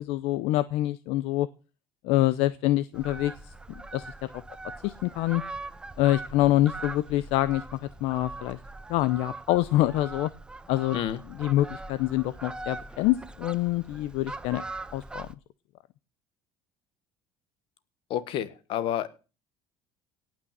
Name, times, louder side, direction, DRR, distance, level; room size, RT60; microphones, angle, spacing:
voice 1, 0.0-1.5 2.0-3.5 3.9-4.3 4.8-5.4 6.0-8.6 8.9-10.3 10.7-11.0 11.4-14.6 14.9-15.3, left 15 dB, 75° left, 16 dB, 0.7 m, -26 dB
Fowl, 2.9-15.4, right 2 dB, 10° right, 0.6 m, -41 dB
voice 2, 18.1-19.2, left 11 dB, 55° left, 15 dB, 1.5 m, -30 dB
18.0 x 6.3 x 7.5 m, 0.34 s
cardioid pair, 155°, 10 cm